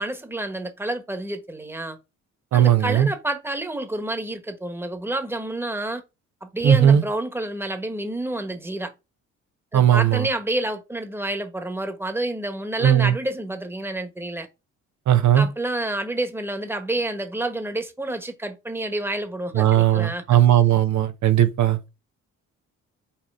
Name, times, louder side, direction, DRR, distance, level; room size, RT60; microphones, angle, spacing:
voice 1, 0.0-2.0 2.5-6.0 6.4-8.9 9.7-14.5 15.3-20.2, right 1 dB, 10° right, 1.3 m, -29 dB
voice 2, 2.5-3.1 6.6-7.0 9.7-10.3 12.8-13.2 15.1-15.5 19.5-21.8, right 10 dB, 70° right, 1.0 m, -17 dB
5.8 x 4.3 x 5.5 m
cardioid pair, 90°, 30 cm